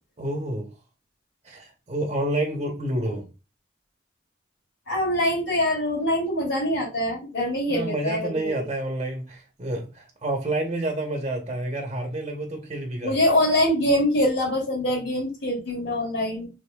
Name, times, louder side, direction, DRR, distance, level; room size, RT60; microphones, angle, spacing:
voice 1, 0.2-0.7 1.4-3.3 7.7-13.2, right 1 dB, 35° right, 0.9 m, -29 dB
voice 2, 4.9-8.7 13.0-16.5, left 1 dB, 85° left, 2.7 m, -24 dB
5.1 x 3.7 x 2.3 m
head